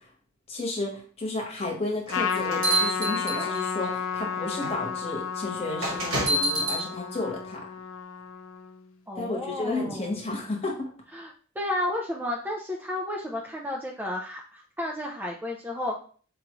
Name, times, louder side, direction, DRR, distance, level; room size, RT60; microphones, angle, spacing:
voice 1, 0.5-7.6 9.1-10.9, left 2 dB, 30° left, -1 dB, 1.1 m, -32 dB
Trumpet, 2.1-8.8, left 6 dB, 70° left, 0.5 m, -32 dB
sound 1, 2.1-3.8 4.6-4.8 5.8-6.8, right 2 dB, 80° right, 1.4 m, -27 dB
voice 2, 9.1-10.1 11.1-16.0, left 1 dB, 10° right, -1 dB, 0.3 m, -32 dB
4.9 x 2.3 x 3.0 m, 0.43 s
head